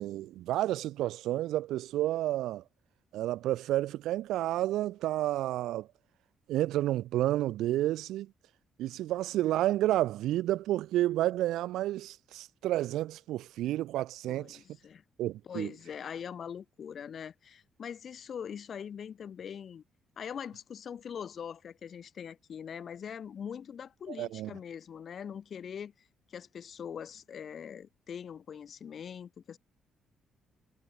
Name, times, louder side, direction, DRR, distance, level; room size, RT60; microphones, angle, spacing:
voice 1, 0.0-2.6 3.1-5.9 6.5-8.3 8.8-14.6 15.2-15.7 24.2-24.5, right 14 dB, 85° right, 0.7 m, -30 dB
voice 2, 14.3-15.0 15.4-19.8 20.2-25.9 26.3-29.6, left 8 dB, 55° left, 2.6 m, -42 dB
cardioid pair, 90°, 0 cm